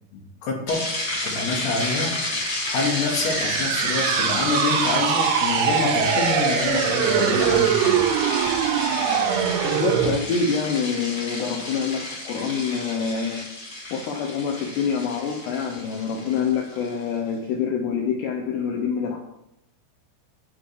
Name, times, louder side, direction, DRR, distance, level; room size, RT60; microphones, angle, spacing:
voice 1, 0.1-0.9 1.2-2.2 2.7-8.1, left 3 dB, 65° left, 0 dB, 2.9 m, -26 dB
sound 1, 0.7-17.0, left 2 dB, 30° left, 1.9 m, -31 dB
sound 2, 2.8-10.2, right 8 dB, 80° right, 3.0 m, -23 dB
voice 2, 9.6-13.4 13.9-19.2, left 6 dB, 85° left, 3 dB, 2.4 m, -26 dB
12.5 x 8.7 x 3.2 m, 0.85 s
omnidirectional pair, 5.9 m